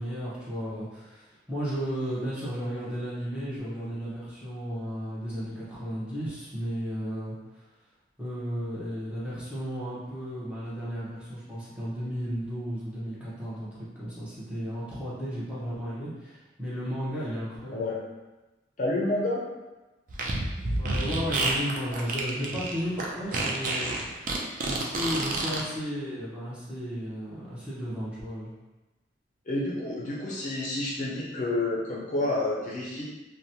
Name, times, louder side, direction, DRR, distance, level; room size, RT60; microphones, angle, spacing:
voice 1, 0.0-7.4 8.2-13.7 13.9-17.8 20.8-28.5, equal, 5° right, -10 dB, 0.8 m, -34 dB
voice 2, 17.7-18.0 18.8-19.4 29.5-33.0, left 2 dB, 40° left, -5 dB, 0.4 m, -29 dB
Fart, 20.1-25.6, right 2 dB, 45° right, 0.4 m, -29 dB
2.8 x 2.1 x 2.7 m, 1.1 s
head